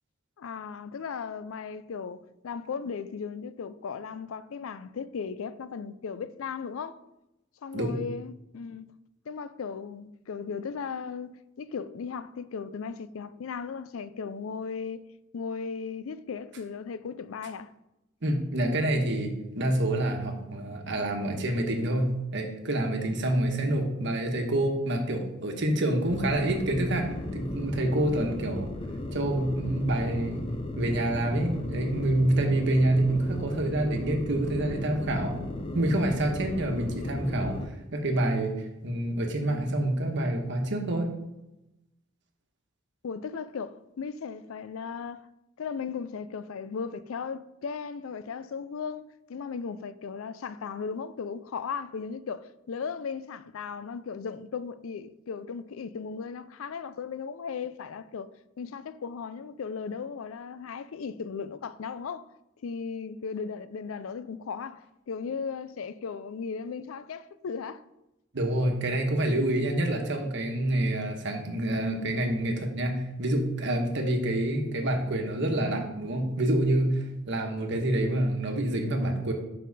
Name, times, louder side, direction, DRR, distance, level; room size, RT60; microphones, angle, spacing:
voice 1, 0.4-7.0 7.6-8.9 9.3-15.0 15.3-17.7 43.0-45.3 45.6-49.0 49.3-58.3 58.6-62.3 62.6-67.8, left 5 dB, 80° left, 0.4 m, -36 dB
voice 2, 18.2-28.7 29.1-30.4 30.8-35.4 35.7-37.6 37.9-41.1 68.3-79.3, right 1 dB, 60° right, 1.2 m, -27 dB
sound 1, 26.1-37.7, left 1 dB, 25° left, 0.5 m, -35 dB
7.3 x 5.5 x 4.1 m
head